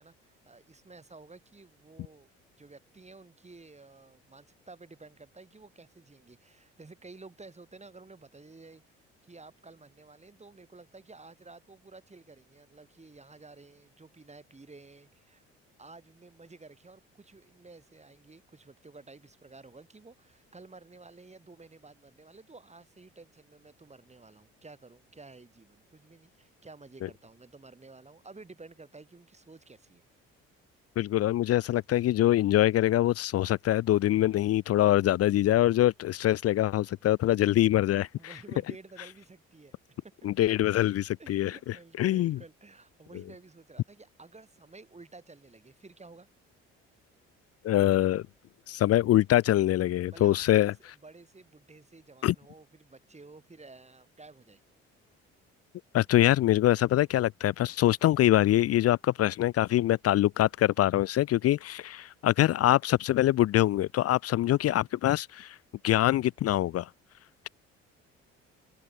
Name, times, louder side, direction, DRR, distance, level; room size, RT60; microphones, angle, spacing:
voice 1, 0.0-2.3 2.6-8.8 9.2-15.4 15.8-30.0 38.2-39.8 40.2-40.3 41.2-46.3 50.1-54.6, right 3 dB, 20° right, 7.3 m, -52 dB
voice 2, 31.0-38.1 40.2-42.4 47.6-48.2 48.7-50.7 52.2-52.3 55.9-65.6 65.8-66.9, left 14 dB, 55° left, 0.6 m, -24 dB
supercardioid pair, 65°, 30 cm